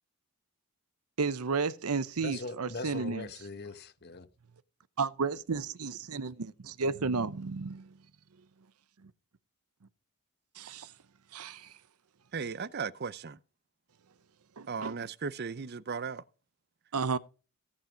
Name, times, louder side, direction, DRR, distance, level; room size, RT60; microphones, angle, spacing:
voice 1, 1.2-3.3 5.0-7.9 9.0-9.1 10.6-10.9 11.3-11.7 14.6-14.9 16.9-17.2, right 4 dB, 85° right, 0.7 m, -33 dB
voice 2, 2.2-4.3, left 3 dB, 45° left, 1.1 m, -41 dB
voice 3, 12.3-13.4 14.7-16.2, right 5 dB, 45° right, 0.6 m, -36 dB
17.0 x 5.8 x 5.2 m
head